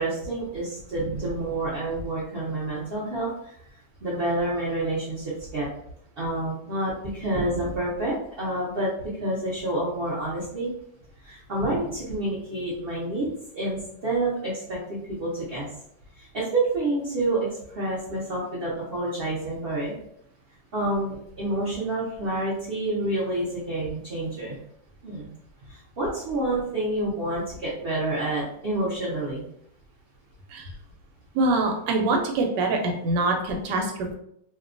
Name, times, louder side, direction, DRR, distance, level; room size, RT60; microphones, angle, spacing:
voice 1, 0.0-3.5 4.0-5.7 6.2-10.7 11.2-13.3 13.5-15.7 16.2-17.4 17.7-19.9 20.7-24.6 25.0-25.3 25.7-29.4, right 2 dB, 55° right, -7 dB, 0.6 m, -28 dB
voice 2, 31.3-34.1, right 2 dB, 85° right, 3 dB, 1.2 m, -24 dB
2.7 x 2.2 x 2.5 m, 0.72 s
omnidirectional pair, 1.8 m